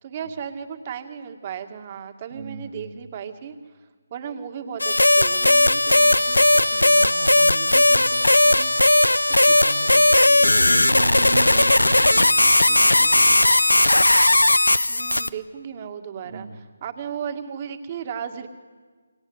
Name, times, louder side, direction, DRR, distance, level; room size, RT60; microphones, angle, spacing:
voice 1, 0.0-3.6 4.1-5.6 14.9-18.5, right 7 dB, 35° right, 7 dB, 2.1 m, -35 dB
voice 2, 2.3-3.1 5.4-8.7 9.3-13.5 16.2-16.6, right 4 dB, 55° right, 5 dB, 2.5 m, -37 dB
sound 1, 4.8-15.3, left 1 dB, 90° left, 0.9 m, -17 dB
28.0 x 24.5 x 8.1 m, 1.5 s
figure-of-eight pair, 150°, 0 cm